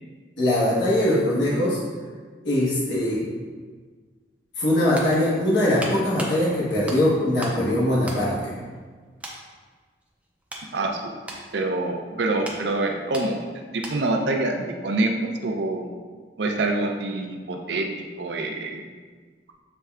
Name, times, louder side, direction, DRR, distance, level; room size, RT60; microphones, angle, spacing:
voice 1, 0.4-1.8 2.4-3.2 4.6-8.5, left 1 dB, 80° left, -8 dB, 1.3 m, -21 dB
sound 1, 4.5-7.7 8.0-8.9 9.2-9.5 10.0-14.2 14.5-14.7, right 1 dB, 5° right, 0.5 m, -39 dB
voice 2, 10.7-11.1 11.5-15.9 16.4-17.9 18.2-18.8, right 2 dB, 70° right, 2 dB, 0.5 m, -26 dB
6.9 x 3.2 x 2.4 m, 1.5 s
head